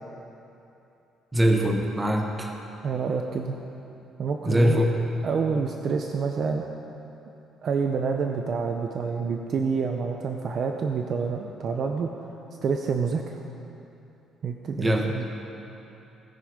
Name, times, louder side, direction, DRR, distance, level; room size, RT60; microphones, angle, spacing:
voice 1, 1.3-2.5 4.4-5.0 14.7-15.1, equal, 10° right, 2 dB, 1.1 m, -22 dB
voice 2, 2.8-3.6 4.2-4.8 5.2-6.6 7.6-12.1 12.6-13.2 14.4-15.2, right 5 dB, 40° right, 3 dB, 0.6 m, -27 dB
16.5 x 9.8 x 5.0 m, 2.9 s
cardioid pair, 170°, 0 cm